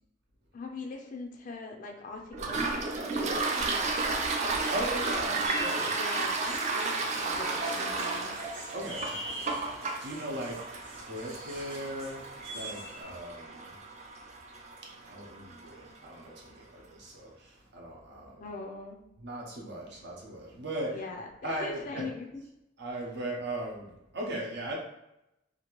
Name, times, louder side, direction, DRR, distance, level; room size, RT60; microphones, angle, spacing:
voice 1, 0.5-3.9 5.3-8.4 9.3-9.9 18.4-19.0 20.8-22.4, left 3 dB, 40° left, 2 dB, 0.3 m, -42 dB
Toilet flush, 2.3-15.7, right 3 dB, 35° right, 0.3 m, -33 dB
voice 2, 4.7-5.8 8.7-9.2 10.0-10.6 11.0-12.2 12.5-13.8 14.8-18.5 19.2-21.0 21.4-22.1 22.8-24.7, right 1 dB, 55° right, -2 dB, 0.7 m, -38 dB
sound 1, 5.4-13.0, right 1 dB, 90° right, 1.1 m, -44 dB
2.8 x 2.4 x 3.0 m, 0.88 s
head